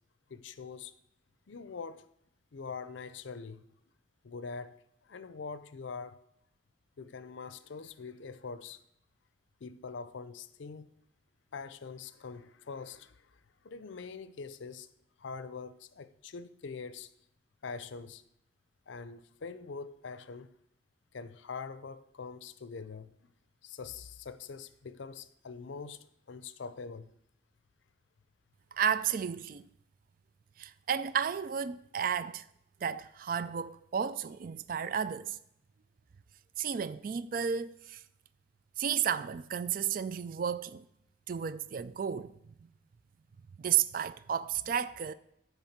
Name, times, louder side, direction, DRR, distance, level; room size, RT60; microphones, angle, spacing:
voice 1, 0.3-0.9 1.5-2.1 2.5-3.7 4.2-4.8 5.0-6.2 7.0-8.8 9.6-10.9 11.5-14.9 15.2-17.1 17.6-18.2 18.9-20.5 21.1-23.1 23.6-27.1, left 5 dB, 70° left, 0.5 m, -44 dB
voice 2, 28.7-29.7 30.6-32.4 32.8-35.4 36.6-38.0 38.8-40.9 41.3-42.3 42.6-42.7 43.6-45.1, right 8 dB, 45° right, 0.3 m, -32 dB
10.0 x 3.5 x 7.2 m
head